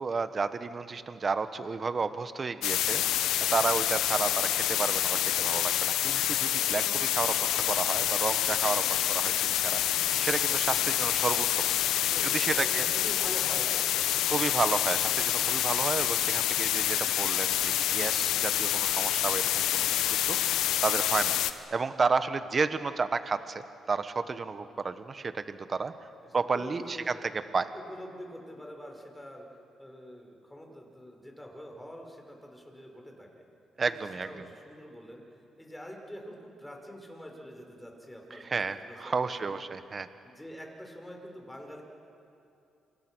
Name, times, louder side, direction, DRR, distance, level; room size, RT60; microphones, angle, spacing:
voice 1, 0.0-11.6 11.9-12.9 14.3-26.1 26.3-27.7 33.8-34.3 38.3-40.1, right 4 dB, 35° right, 11 dB, 1.3 m, -32 dB
sound 1, 2.6-21.5, left 12 dB, 85° left, 1.0 m, -27 dB
voice 2, 12.1-14.5 26.2-27.3 27.7-29.5 29.8-33.4 33.8-35.2 35.6-39.6 40.2-41.8, equal, 10° left, 1 dB, 5.7 m, -45 dB
27.0 x 27.0 x 6.4 m, 2.8 s
cardioid pair, 90°, 0 cm